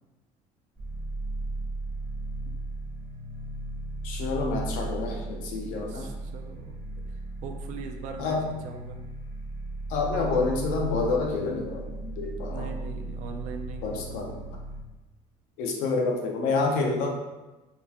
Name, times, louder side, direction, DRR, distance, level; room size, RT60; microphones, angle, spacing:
sound 1, 0.8-14.8, right 2 dB, 5° left, 1.1 m, -36 dB
voice 1, 4.0-6.1 8.2-8.4 9.9-12.7 13.8-14.4 15.6-17.1, left 3 dB, 75° left, 1 dB, 0.6 m, -28 dB
voice 2, 5.6-6.8 7.4-9.0 12.5-14.4, right 6 dB, 55° right, 3 dB, 0.4 m, -41 dB
3.6 x 2.3 x 2.8 m, 1.1 s
cardioid pair, 180°, 15 cm